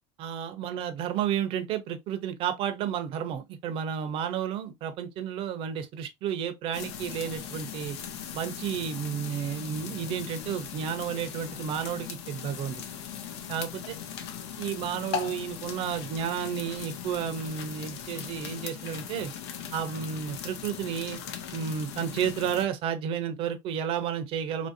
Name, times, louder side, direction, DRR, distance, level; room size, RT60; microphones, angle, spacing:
voice 1, 0.2-8.0 8.3-12.8 13.5-13.9 14.6-19.3 19.7-21.2 21.5-24.7, right 8 dB, 40° right, 0.6 m, -32 dB
sound 1, 6.7-22.7, left 8 dB, 85° left, 0.7 m, -39 dB
3.1 x 2.6 x 2.5 m
supercardioid pair, 145°, 14 cm